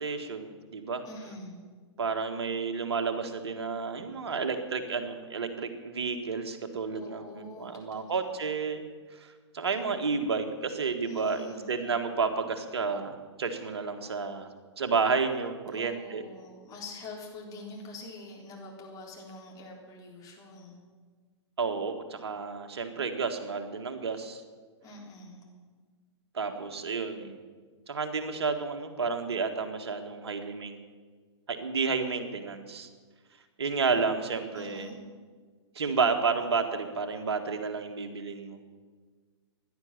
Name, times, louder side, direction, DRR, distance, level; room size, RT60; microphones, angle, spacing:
voice 1, 0.0-1.0 2.0-8.8 9.1-14.5 14.8-16.2 21.6-24.4 26.3-27.4 27.9-30.8 31.5-32.9 33.6-34.9 35.8-38.6, right 5 dB, 60° right, 7 dB, 1.9 m, -31 dB
voice 2, 1.0-1.6 6.9-8.5 11.0-11.7 15.7-20.8 24.8-25.5 34.6-35.0, left 2 dB, 25° left, -1 dB, 3.8 m, -45 dB
16.0 x 11.0 x 7.5 m, 1.5 s
figure-of-eight pair, 110°, 15 cm